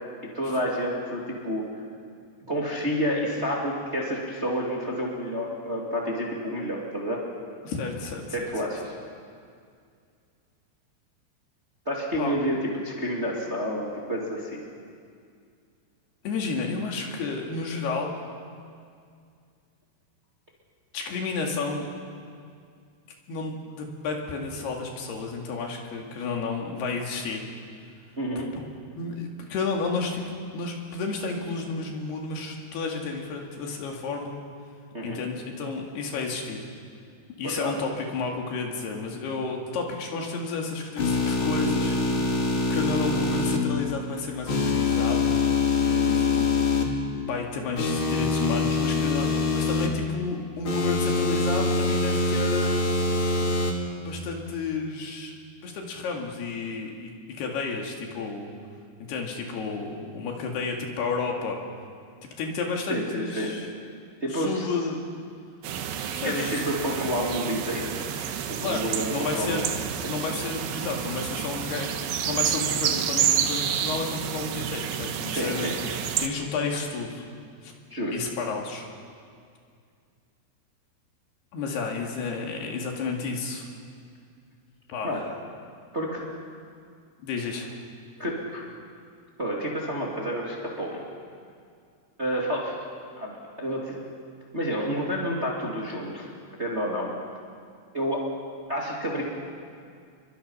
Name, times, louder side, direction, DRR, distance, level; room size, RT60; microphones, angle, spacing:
voice 1, 0.3-1.6 2.5-7.2 8.3-8.9 11.9-14.6 28.2-28.5 34.9-35.2 37.4-37.7 45.9-46.2 62.9-63.5 64.2-64.7 66.2-67.9 68.5-69.7 70.0-70.2 75.3-75.7 77.9-78.2 85.0-85.2 85.9-86.2 88.2-88.7 89.4-91.0 92.2-92.9 93.2-94.0 94.5-96.3 96.6-97.1 97.9-98.3 98.7-99.2, equal, 20° right, -3 dB, 2.1 m, -29 dB
voice 2, 7.7-8.5 12.2-12.4 16.2-18.1 20.9-21.9 23.3-27.4 28.6-28.7 29.0-30.2 30.5-34.3 35.0-36.6 37.3-42.0 42.7-45.3 46.2-46.5 47.1-52.8 54.0-55.3 55.6-57.1 57.4-58.5 59.1-61.6 62.2-63.7 64.3-65.0 66.1-66.6 68.6-69.7 70.1-75.7 76.2-77.3 77.6-77.7 78.1-78.9 81.5-83.7 84.9-85.2 87.2-87.8, left 4 dB, 65° left, 1 dB, 4.1 m, -31 dB
sound 1, 41.0-43.6 44.5-46.8 47.8-49.9 50.6-53.7, left 3 dB, 40° left, 2.1 m, -24 dB
sound 2, 65.6-76.3, right 9 dB, 75° right, 3.2 m, -29 dB
29.0 x 23.0 x 5.7 m, 2.2 s
omnidirectional pair, 5.1 m